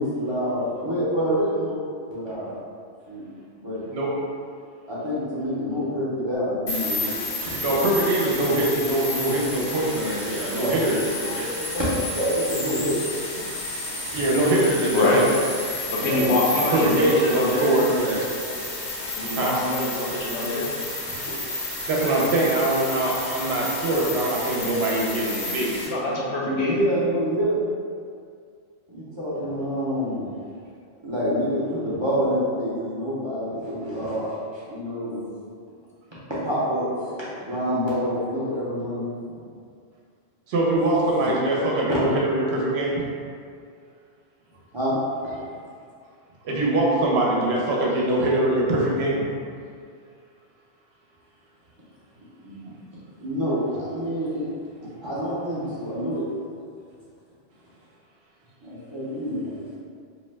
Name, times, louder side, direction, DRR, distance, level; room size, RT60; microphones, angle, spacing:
voice 1, 0.0-1.8 2.1-2.5 3.1-3.2 3.5-3.8 4.9-7.1 11.7-11.8 12.1-13.0 16.0-16.3 16.7-17.0 26.4-27.7 28.9-30.3 31.0-34.3 34.5-35.3 36.4-36.8 37.4-39.4 41.2-41.3 41.9-42.0 44.7-45.0 45.2-45.3 52.4-52.7 53.2-54.4 55.0-56.2 58.6-59.4, equal, 35° right, -10 dB, 0.4 m, -27 dB
sound 1, 6.7-25.9, left 2 dB, 50° left, 0.7 m, -31 dB
voice 2, 7.6-11.5 14.1-15.2 16.7-18.3 19.3-19.5 21.9-25.8 40.5-42.9 46.4-49.3, right 1 dB, 70° right, -4 dB, 0.8 m, -23 dB
voice 3, 15.9-17.7 19.1-20.7 25.9-26.8, left 2 dB, 80° left, -3 dB, 0.9 m, -25 dB
2.7 x 2.1 x 3.2 m, 2.2 s
omnidirectional pair, 1.1 m